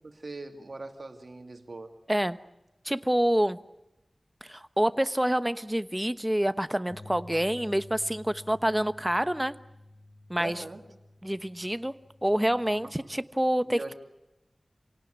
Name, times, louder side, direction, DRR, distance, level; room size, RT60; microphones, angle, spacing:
voice 1, 0.0-1.9 10.4-10.8 12.8-12.9 13.6-13.9, right 2 dB, 70° right, 5 dB, 2.7 m, -41 dB
voice 2, 2.8-3.6 4.4-9.5 10.3-10.6 11.2-11.9 12.2-13.9, equal, 10° right, 12 dB, 1.1 m, -27 dB
sound 1, 6.9-13.2, left 2 dB, 90° left, 6.9 m, -51 dB
28.0 x 18.0 x 9.6 m, 0.95 s
wide cardioid pair, 50°, 0 cm